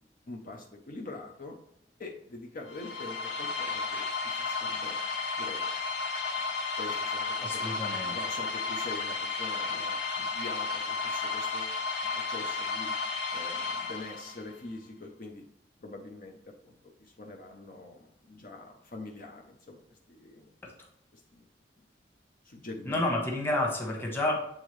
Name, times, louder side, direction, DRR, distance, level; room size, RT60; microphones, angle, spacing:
voice 1, 0.3-1.6 2.0-5.0 5.3-5.6 6.8-7.7 8.1-11.8 12.1-12.9 13.3-15.4 15.8-16.4 16.6-20.5 21.1-21.4 22.4-23.0, left 2 dB, 50° left, 1 dB, 0.7 m, -44 dB
sound 1, 2.7-14.5, left 4 dB, 80° left, 1.9 m, -33 dB
voice 2, 7.4-8.2 20.6-20.7 22.8-24.4, left 1 dB, 10° left, 0 dB, 1.2 m, -30 dB
8.1 x 3.7 x 3.2 m, 0.77 s
head